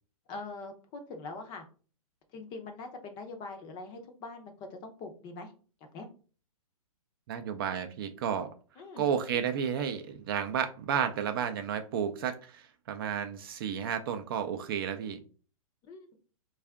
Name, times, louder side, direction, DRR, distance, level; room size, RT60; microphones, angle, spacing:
voice 1, 0.3-1.6 2.3-5.5 5.9-6.1 8.8-9.1 15.8-16.2, left 3 dB, 25° left, 5 dB, 0.5 m, -43 dB
voice 2, 7.3-8.5 9.0-15.2, right 8 dB, 40° right, 8 dB, 0.4 m, -32 dB
3.4 x 2.3 x 3.4 m, 0.39 s
hypercardioid pair, 150°, 19 cm